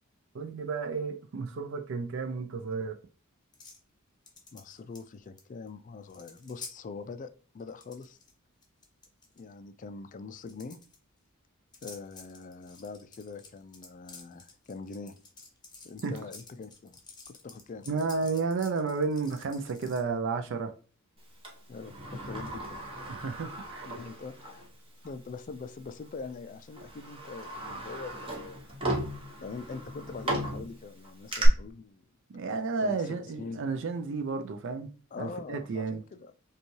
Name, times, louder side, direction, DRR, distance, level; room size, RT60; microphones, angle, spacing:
voice 1, 0.3-3.0 16.0-16.2 17.9-20.7 23.1-23.9 32.3-34.9 35.2-36.0, right 4 dB, 60° right, 0.4 m, -32 dB
sound 1, 3.5-3.8 4.3-5.4 5.7-5.8 6.0-6.7 7.6-8.3 8.6-9.4 10.4-11.0 11.7-20.0, left 4 dB, 20° left, 0.9 m, -50 dB
voice 2, 4.5-8.2 9.4-10.8 11.8-15.2 15.8-17.0 17.3-17.9 21.7-22.8 23.8-24.7 25.0-28.6 29.4-32.0 32.8-33.0 33.4-33.6 35.1-36.3, left 4 dB, 40° left, 0.3 m, -43 dB
Sliding door, 21.4-24.7 25.0-25.1 26.1-26.3 26.7-31.5, right 1 dB, 25° right, 1.0 m, -37 dB
5.2 x 2.3 x 3.1 m
head